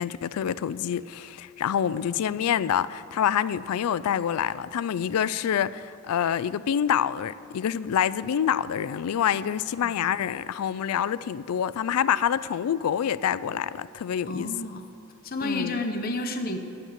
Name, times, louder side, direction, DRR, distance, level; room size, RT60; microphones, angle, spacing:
voice 1, 0.0-14.5 15.4-15.8, left 9 dB, 85° left, 0.3 m, -27 dB
voice 2, 14.3-14.8 15.2-16.6, left 2 dB, 40° left, 0.8 m, -30 dB
9.9 x 7.3 x 9.2 m
head